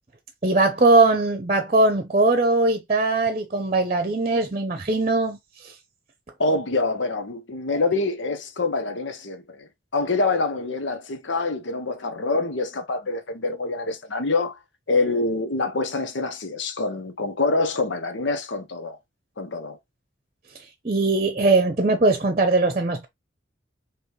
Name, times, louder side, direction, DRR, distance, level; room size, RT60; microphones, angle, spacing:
voice 1, 0.4-5.7 20.8-23.1, right 2 dB, 35° right, 0.8 m, -20 dB
voice 2, 6.4-14.6 14.9-19.0 19.4-19.8, left 3 dB, 75° left, 0.9 m, -26 dB
4.9 x 3.1 x 3.1 m
head